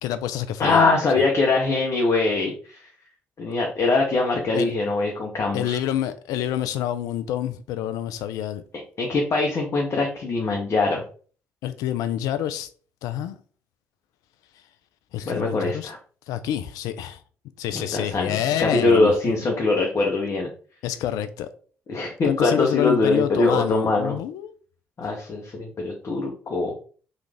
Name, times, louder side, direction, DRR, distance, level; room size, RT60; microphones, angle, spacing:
voice 1, 0.0-0.8 4.5-4.7 5.5-8.6 11.6-12.7 13.0-13.4 15.1-15.9 16.3-17.2 17.6-19.1 20.8-21.5 22.2-24.5, left 11 dB, 65° left, 0.3 m, -27 dB
voice 2, 0.6-2.9 3.4-5.8 9.0-11.0 15.3-16.0 17.7-20.5 21.9-24.2 25.0-26.7, left 3 dB, 45° left, 0.8 m, -22 dB
3.2 x 2.4 x 3.3 m
figure-of-eight pair, 45°, 7 cm